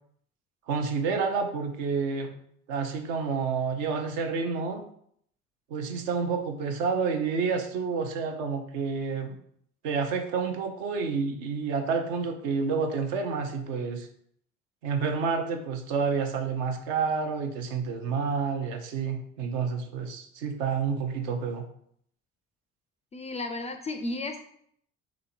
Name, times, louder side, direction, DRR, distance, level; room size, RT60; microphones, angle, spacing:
voice 1, 0.7-2.3 2.7-4.8 5.7-9.4 9.8-14.1 14.8-21.7, right 5 dB, 65° right, 5 dB, 0.7 m, -29 dB
voice 2, 23.1-24.4, left 2 dB, 20° left, 6 dB, 0.3 m, -33 dB
3.6 x 2.9 x 4.3 m, 0.67 s
figure-of-eight pair, 50°, 37 cm